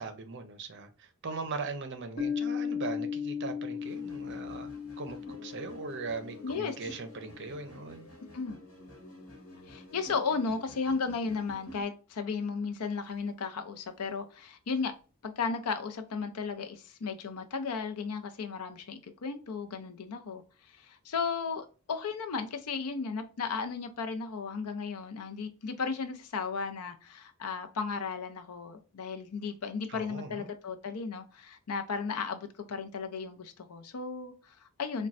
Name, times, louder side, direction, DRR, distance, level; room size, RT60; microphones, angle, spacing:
voice 1, 0.0-8.1 29.9-30.5, right 4 dB, 50° right, 0.5 m, -40 dB
Piano, 2.2-7.5, left 7 dB, 40° left, 0.6 m, -37 dB
sound 1, 3.8-11.8, left 1 dB, 65° left, 1.2 m, -50 dB
voice 2, 6.4-6.7 8.3-8.6 9.7-14.9 15.2-20.4 20.8-35.1, left 5 dB, 90° left, 0.5 m, -35 dB
4.1 x 2.2 x 2.5 m
head